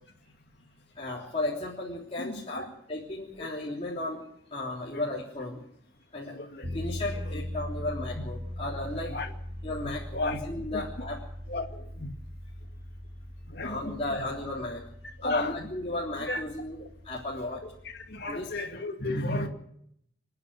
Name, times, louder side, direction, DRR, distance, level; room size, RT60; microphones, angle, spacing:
voice 1, 1.0-4.2 4.5-5.6 6.1-6.4 6.7-9.1 9.6-11.2 13.6-14.8 15.2-16.8 17.0-17.6 18.3-18.5 19.3-19.5, left 2 dB, 30° left, -5 dB, 3.5 m, -34 dB
voice 2, 2.2-2.6 3.4-3.5 3.9-4.0 4.9-5.0 6.3-6.8 7.3-7.4 9.0-9.3 9.8-10.4 10.7-11.1 11.5-12.1 13.5-14.2 15.2-15.7 16.3-16.4 16.8-16.9 17.5-17.6 17.8-19.5, left 2 dB, 60° left, 3 dB, 2.4 m, -34 dB
sound 1, 6.6-18.5, left 1 dB, 50° right, 3.3 m, -40 dB
28.5 x 9.6 x 9.6 m, 0.72 s
head